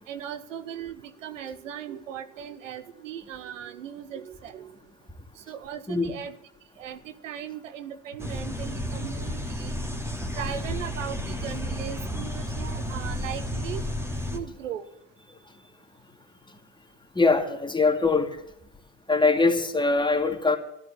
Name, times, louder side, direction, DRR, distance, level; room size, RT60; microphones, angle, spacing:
voice 1, 0.1-4.7 5.5-6.4 6.8-9.8 10.3-13.8 14.3-14.8, right 9 dB, 90° right, 1.0 m, -38 dB
sound 1, 8.2-14.4, left 1 dB, 5° right, 2.6 m, -32 dB
voice 2, 17.1-18.4 19.1-20.6, left 3 dB, 10° left, 2.3 m, -22 dB
13.0 x 12.5 x 7.2 m
hypercardioid pair, 70°, 37 cm